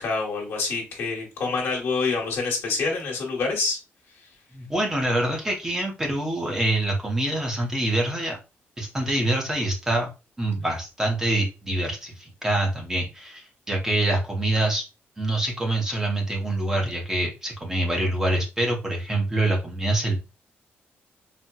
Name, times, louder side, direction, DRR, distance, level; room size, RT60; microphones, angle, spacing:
voice 1, 0.0-3.8, left 4 dB, 70° left, 1.2 m, -26 dB
voice 2, 4.5-8.4 8.8-10.1 10.4-14.8 15.2-20.2, right 1 dB, 10° right, 0.7 m, -25 dB
4.1 x 2.1 x 2.2 m
wide cardioid pair, 175°, 4 cm